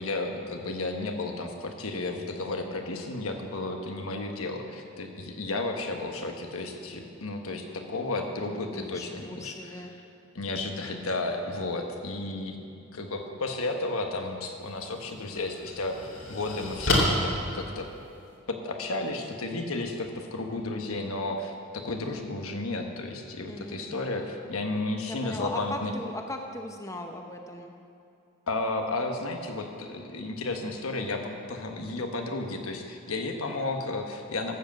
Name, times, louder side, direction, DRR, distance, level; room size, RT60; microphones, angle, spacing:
voice 1, 0.0-10.0 10.3-16.0 16.3-17.9 18.5-25.9 28.5-34.6, left 2 dB, 85° left, 3 dB, 1.3 m, -33 dB
voice 2, 8.7-9.9 23.5-24.1 25.1-27.7, left 1 dB, 15° left, 3 dB, 0.7 m, -38 dB
sound 1, 14.6-14.8 15.3-18.4, left 1 dB, 65° left, 2.6 m, -29 dB
12.5 x 7.9 x 7.5 m, 2.5 s
head